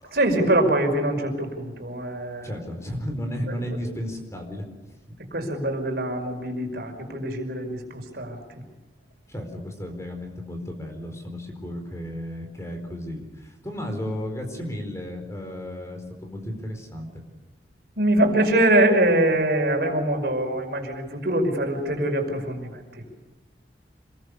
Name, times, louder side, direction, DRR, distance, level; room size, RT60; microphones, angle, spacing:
voice 1, 0.1-2.5 5.3-8.6 18.0-22.7, right 1 dB, 60° right, 3 dB, 5.5 m, -23 dB
voice 2, 2.4-4.6 9.3-17.1, equal, 15° left, 4 dB, 4.4 m, -34 dB
27.0 x 22.0 x 6.9 m, 1.2 s
head